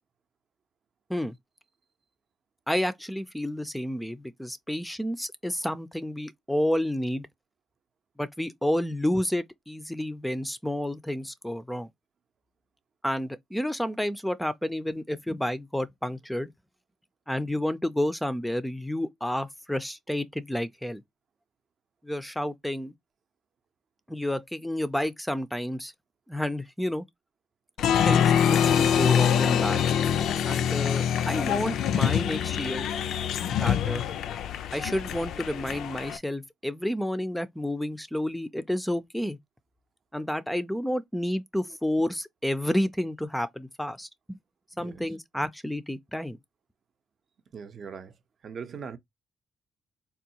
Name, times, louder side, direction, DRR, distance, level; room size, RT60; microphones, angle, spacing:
voice 1, 2.7-7.3 8.2-11.9 13.0-16.5 17.3-21.0 22.0-22.9 24.1-25.9 26.3-27.1 28.1-29.8 30.4-32.9 33.6-34.0 34.7-39.4 40.1-44.4 44.8-46.4, left 1 dB, 5° left, 0.4 m, -30 dB
Applause, 27.8-36.2, left 8 dB, 75° left, 0.4 m, -25 dB
voice 2, 47.5-48.1 48.4-49.0, right 6 dB, 55° right, 0.6 m, -40 dB
3.6 x 2.3 x 2.7 m
cardioid pair, 90°, 0 cm